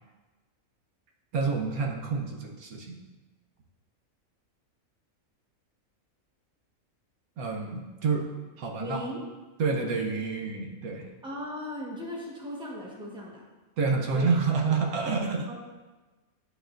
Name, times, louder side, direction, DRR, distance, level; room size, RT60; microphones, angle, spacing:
voice 1, 1.3-3.0 7.4-8.3 8.6-9.0 9.6-11.1 13.8-15.5, right 4 dB, 90° right, 1 dB, 1.4 m, -28 dB
voice 2, 8.8-9.2 11.2-13.4 14.1-14.3 15.5-15.6, equal, 5° right, -4 dB, 1.1 m, -37 dB
11.0 x 4.8 x 2.5 m, 1.2 s
omnidirectional pair, 1.5 m